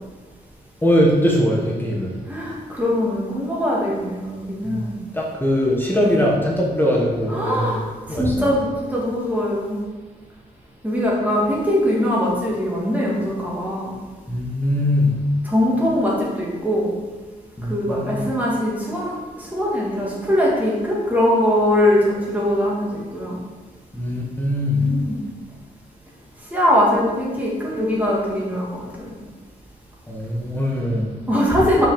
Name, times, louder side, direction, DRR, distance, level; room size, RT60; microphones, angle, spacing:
voice 1, 0.8-2.2 4.6-4.8 5.1-7.8 8.1-8.5 14.3-15.1 17.6-18.2 23.9-24.8 30.1-31.1, left 1 dB, 10° left, -2 dB, 1.3 m, -21 dB
voice 2, 2.3-5.0 6.0-6.2 7.3-9.8 10.8-14.0 15.4-16.9 17.7-23.4 24.7-25.2 26.5-29.1 31.3-31.9, left 1 dB, 10° right, -5 dB, 2.5 m, -21 dB
5.7 x 5.5 x 5.1 m, 1.3 s
cardioid pair, 100°, 17 cm